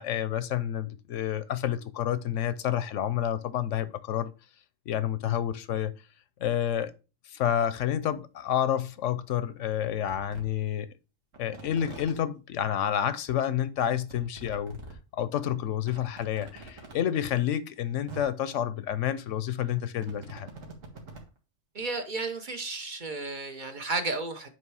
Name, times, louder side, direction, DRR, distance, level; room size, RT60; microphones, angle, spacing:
voice 1, 0.0-4.3 4.9-5.9 6.4-6.9 7.2-10.9 11.4-14.8 15.1-20.5, left 10 dB, 75° left, 1.0 m, -29 dB
sound 1, 7.9-8.0 9.0-9.1 9.6-9.7 10.1-10.4 11.3-12.1 13.2-13.3 13.5-13.6 14.1-14.9 15.4-15.5 15.8-16.9 17.8-17.9 18.1-18.2 19.5-21.3 21.8-21.9, right 2 dB, 90° right, 2.0 m, -44 dB
voice 2, 21.7-24.5, right 3 dB, 45° right, 0.9 m, -33 dB
9.0 x 3.3 x 4.7 m
omnidirectional pair, 1.3 m